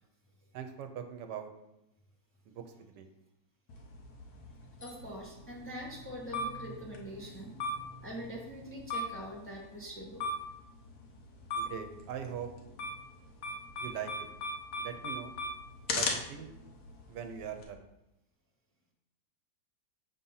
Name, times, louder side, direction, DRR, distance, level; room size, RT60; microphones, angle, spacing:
voice 1, 0.5-1.5 2.5-3.1 11.5-12.5 13.8-14.3 14.8-15.3 15.9-16.5 17.1-17.8, right 8 dB, 85° right, 6 dB, 1.3 m, -41 dB
sound 1, 3.7-17.6, left 1 dB, 65° left, 1.3 m, -40 dB
voice 2, 4.8-7.6 8.0-10.2, equal, 10° left, -3 dB, 0.8 m, -43 dB
7.2 x 2.7 x 5.5 m, 0.89 s
omnidirectional pair, 1.8 m